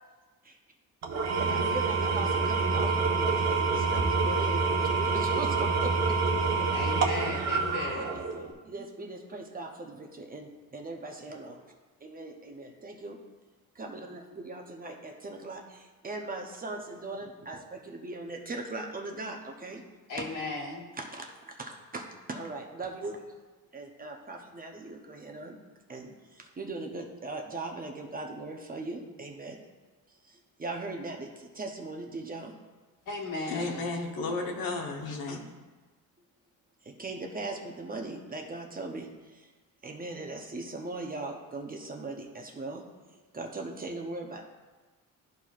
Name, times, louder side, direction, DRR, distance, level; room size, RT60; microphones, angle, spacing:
Engine / Tools, 1.0-8.5, right 4 dB, 45° right, 1.0 m, -27 dB
voice 1, 1.4-6.7 8.0-11.6 12.0-13.2 13.7-19.8 20.2-20.3 21.0-23.2 23.7-25.6 25.9-29.6 30.1-32.5 36.8-39.1 39.8-42.8 43.1-44.4, right 2 dB, 25° right, 2 dB, 0.7 m, -39 dB
voice 2, 6.7-8.2 20.1-20.9 33.1-33.9, left 2 dB, 60° left, -3 dB, 1.8 m, -36 dB
voice 3, 33.4-35.5, left 3 dB, 80° left, 0 dB, 1.1 m, -33 dB
13.0 x 4.4 x 2.4 m, 1.3 s
cardioid pair, 135°, 35 cm